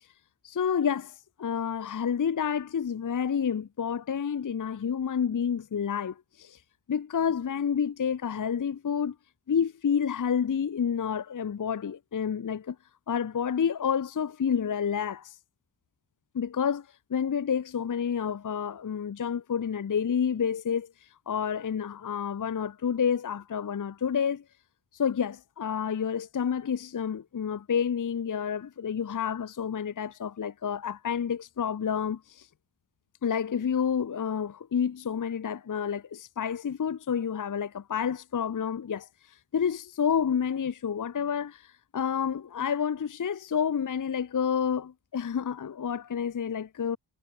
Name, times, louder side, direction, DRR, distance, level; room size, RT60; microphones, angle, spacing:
voice 1, 0.4-6.6 6.9-9.1 9.5-12.8 13.1-15.4 16.3-20.9 21.3-24.4 24.9-32.5 33.2-39.1 39.5-47.0, left 7 dB, 45° left, 0.7 m, -29 dB
wide cardioid pair, 95°, 45 cm